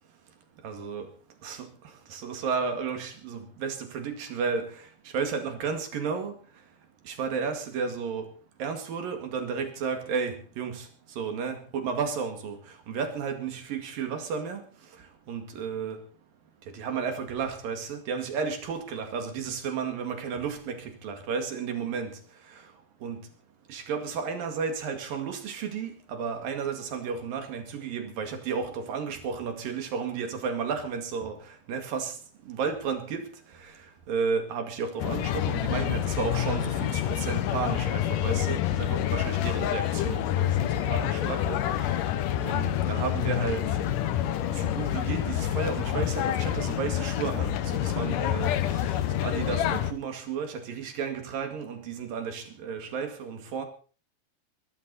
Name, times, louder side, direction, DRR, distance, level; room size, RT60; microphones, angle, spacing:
voice 1, 0.6-1.1 1.4-1.7 2.1-4.7 5.1-6.3 7.1-8.3 8.6-10.9 11.2-12.6 12.9-14.6 15.3-16.0 16.7-22.2 23.0-23.3 23.7-31.4 31.7-32.1 32.5-33.3 34.1-42.0 42.4-43.7 44.5-48.6 48.8-48.9 49.2-53.6, right 5 dB, 55° right, 3.6 m, -32 dB
sound 1, 35.0-49.9, left 11 dB, 80° left, 1.9 m, -27 dB
22.0 x 12.5 x 4.1 m
omnidirectional pair, 5.3 m